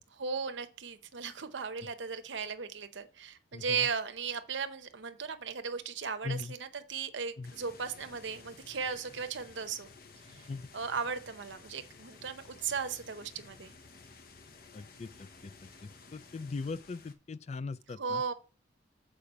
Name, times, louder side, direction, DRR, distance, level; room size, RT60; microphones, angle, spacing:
voice 1, 0.1-9.9 10.3-10.5 10.7-13.8 18.0-18.3, right 5 dB, 70° right, 0.8 m, -36 dB
voice 2, 3.5-3.9 6.2-6.5 7.4-7.5 10.5-10.7 14.7-15.5 15.8-18.2, left 3 dB, 35° left, 0.3 m, -40 dB
sound 1, 7.4-17.1, left 4 dB, 50° left, 0.9 m, -54 dB
6.8 x 4.9 x 5.7 m
head